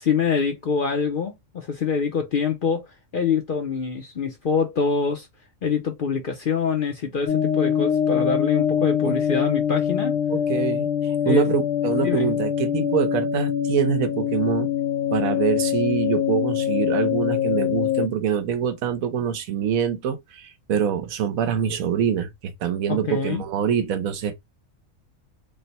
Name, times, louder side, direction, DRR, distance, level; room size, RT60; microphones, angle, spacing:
voice 1, 0.0-2.9 3.1-5.3 5.6-10.1 11.3-11.5 12.0-12.3 22.9-23.4, left 5 dB, 55° left, 0.6 m, -25 dB
sound 1, 7.3-18.1, left 9 dB, 80° left, 1.1 m, -24 dB
voice 2, 10.3-14.7 15.1-24.4, right 8 dB, 80° right, 1.1 m, -25 dB
3.2 x 2.1 x 4.0 m
omnidirectional pair, 1.4 m